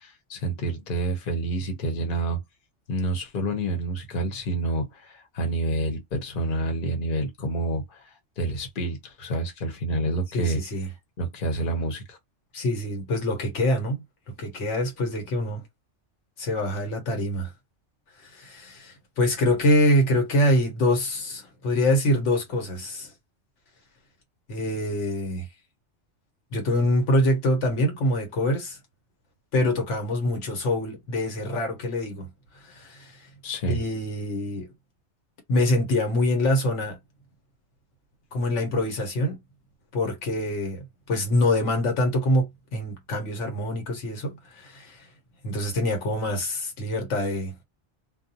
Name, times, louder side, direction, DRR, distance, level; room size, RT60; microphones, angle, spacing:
voice 1, 0.0-2.4 2.9-8.1 8.4-10.6 11.2-12.2 33.4-33.8, right 2 dB, 50° left, 1.0 m, -28 dB
voice 2, 10.3-10.9 12.5-15.6 16.4-17.5 18.2-23.1 24.5-25.5 26.5-28.8 29.5-32.3 32.6-33.3 33.7-34.7 35.5-37.0 38.3-39.4 39.9-45.1 45.4-47.5, left 1 dB, 80° left, 1.2 m, -25 dB
2.3 x 2.2 x 2.6 m
omnidirectional pair, 1.2 m